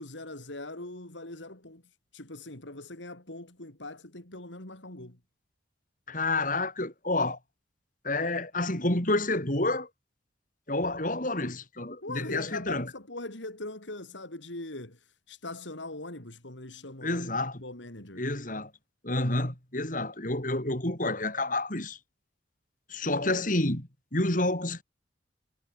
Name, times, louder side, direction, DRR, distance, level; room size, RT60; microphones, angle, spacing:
voice 1, 0.0-1.8 2.1-5.2 12.0-15.0 15.3-17.3 17.6-18.2, left 2 dB, 90° left, 4.6 m, -41 dB
voice 2, 6.1-7.4 8.0-9.9 10.7-12.9 17.0-17.6 18.2-18.7 19.0-22.0 22.9-24.8, left 2 dB, 45° left, 4.4 m, -29 dB
head